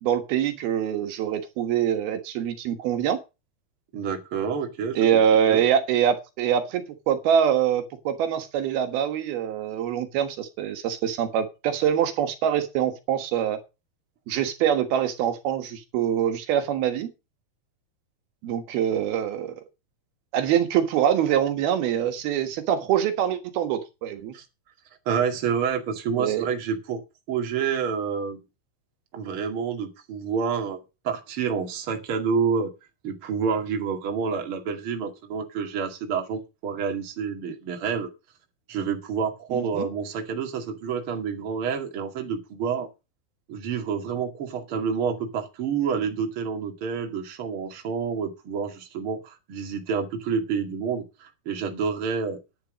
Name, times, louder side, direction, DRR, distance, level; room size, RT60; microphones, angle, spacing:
voice 1, 0.0-3.2 4.9-13.6 14.3-17.1 18.4-19.6 20.3-24.3 26.2-26.5 39.5-39.9, right 9 dB, 80° right, 3.4 m, -24 dB
voice 2, 3.9-5.1 5.5-5.6 24.3-24.4 25.1-27.0 27.3-28.4 29.1-30.8 31.0-32.7 33.0-38.1 38.7-42.9 43.5-52.4, right 6 dB, 40° right, 2.7 m, -28 dB
10.5 x 10.5 x 5.1 m
omnidirectional pair, 4.3 m